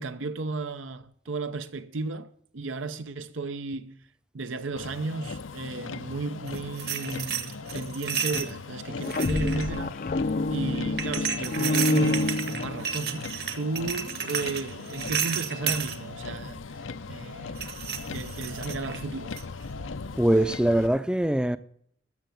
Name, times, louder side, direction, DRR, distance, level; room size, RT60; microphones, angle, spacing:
voice 1, 0.0-4.0 4.3-10.2 10.5-16.8 17.1-17.7 18.1-19.4, right 3 dB, 85° right, 0.8 m, -34 dB
Motor vehicle (road), 4.8-20.9, left 4 dB, 85° left, 0.7 m, -39 dB
sound 1, 6.5-8.5 9.0-9.8 11.0-16.0 17.6-19.0 19.4-19.6, right 8 dB, 50° right, 1.3 m, -32 dB
sound 2, 8.9-13.1, left 2 dB, 45° left, 0.5 m, -27 dB
voice 2, 20.2-21.6, right 1 dB, 5° right, 0.5 m, -22 dB
13.5 x 6.9 x 7.7 m
head